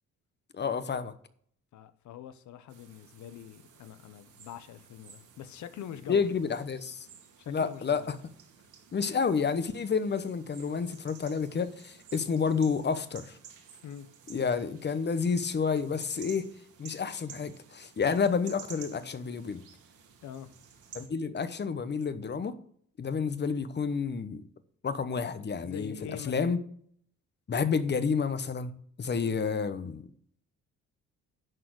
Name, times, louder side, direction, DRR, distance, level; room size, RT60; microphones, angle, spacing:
voice 1, 0.5-1.1 6.1-7.1 7.5-8.1 8.9-13.4 14.3-16.5 16.8-19.6 20.9-22.6 23.0-24.4 24.8-25.9 26.2-26.6 27.5-28.7 29.0-30.0, left 5 dB, 35° left, 0.9 m, -30 dB
voice 2, 1.7-6.3 7.4-8.1 13.8-14.1 20.2-20.5 25.6-26.3, left 9 dB, 70° left, 0.9 m, -44 dB
sound 1, 2.7-21.1, right 7 dB, 80° right, 2.2 m, -53 dB
11.0 x 4.3 x 7.9 m
cardioid pair, 90°, 30 cm